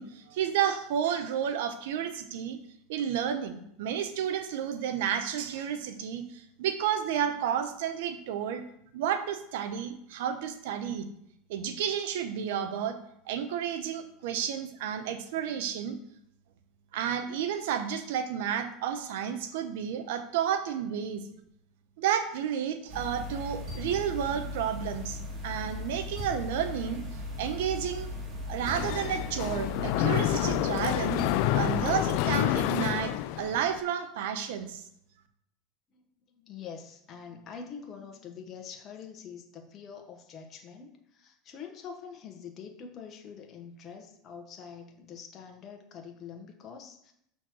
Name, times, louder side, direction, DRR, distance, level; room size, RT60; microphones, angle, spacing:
voice 1, 0.0-2.6 2.9-8.6 8.9-11.1 11.5-13.0 13.3-16.0 16.9-21.2 22.0-25.2 25.4-27.0 27.4-28.1 28.5-31.2 31.5-34.8, right 9 dB, 75° right, 8 dB, 0.9 m, -31 dB
sound 1, 22.9-32.2, left 2 dB, 35° right, 2.6 m, -38 dB
Mechanisms, 28.6-33.8, left 14 dB, 65° left, 0.4 m, -28 dB
voice 2, 35.9-47.1, left 6 dB, 40° left, 4 dB, 1.4 m, -45 dB
6.1 x 4.4 x 6.1 m, 0.74 s
supercardioid pair, 100°, 0 cm